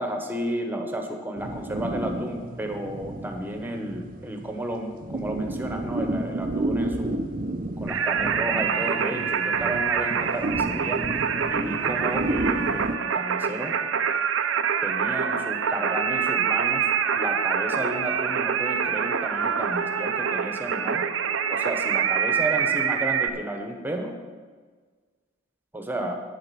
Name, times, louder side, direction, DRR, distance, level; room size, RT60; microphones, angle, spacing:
voice 1, 0.0-7.2 7.8-11.0 11.5-13.7 14.8-16.9 17.2-21.0 21.5-24.1 25.7-26.2, right 1 dB, 10° right, 3 dB, 1.2 m, -32 dB
sound 1, 1.4-13.0, right 2 dB, 45° right, 0.6 m, -31 dB
Singing, 7.9-23.3, right 7 dB, 90° right, 0.6 m, -25 dB
9.3 x 8.8 x 6.1 m, 1.5 s
head